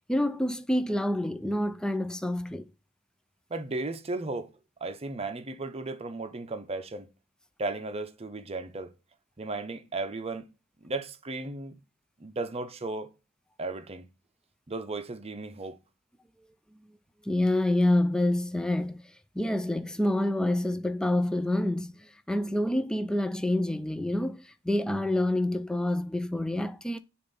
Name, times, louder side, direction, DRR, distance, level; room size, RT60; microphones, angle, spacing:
voice 1, 0.1-2.7 17.3-19.0 19.4-27.0, left 1 dB, 5° left, 0.3 m, -27 dB
voice 2, 3.5-4.5 4.8-7.1 7.6-8.9 9.4-10.5 10.8-11.8 12.2-13.1 13.6-14.1 14.7-15.8, right 2 dB, 30° right, 0.6 m, -35 dB
6.8 x 2.6 x 5.3 m
head